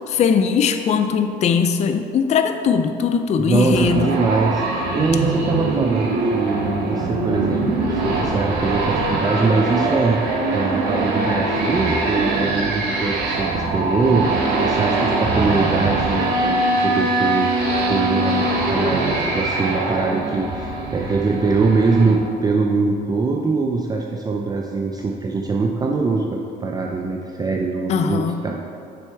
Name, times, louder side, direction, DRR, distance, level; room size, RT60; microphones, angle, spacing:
voice 1, 0.1-4.0 27.9-28.4, left 6 dB, 40° left, 7 dB, 0.4 m, -20 dB
voice 2, 3.4-10.2 10.5-17.5 17.9-28.6, right 3 dB, 25° right, 1 dB, 0.5 m, -22 dB
sound 1, 3.7-22.1, right 2 dB, 75° right, 1.4 m, -22 dB
6.8 x 6.1 x 4.5 m, 2.6 s
cardioid pair, 110°, 17 cm